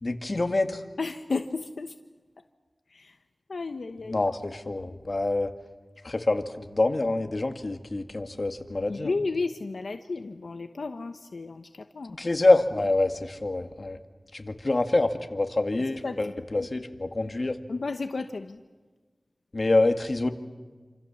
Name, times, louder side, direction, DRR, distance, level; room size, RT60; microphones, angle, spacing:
voice 1, 0.0-0.8 4.0-5.5 6.0-9.1 12.1-14.0 14.3-17.6 19.5-20.3, left 2 dB, 55° left, 6 dB, 2.2 m, -26 dB
voice 2, 1.0-1.9 2.9-3.1 3.5-4.2 8.9-11.7 11.9-12.1 16.0-16.2 16.6-16.7 17.7-18.6, left 3 dB, 90° left, 7 dB, 1.0 m, -32 dB
28.5 x 27.0 x 7.3 m, 1.4 s
wide cardioid pair, 50°, 0 cm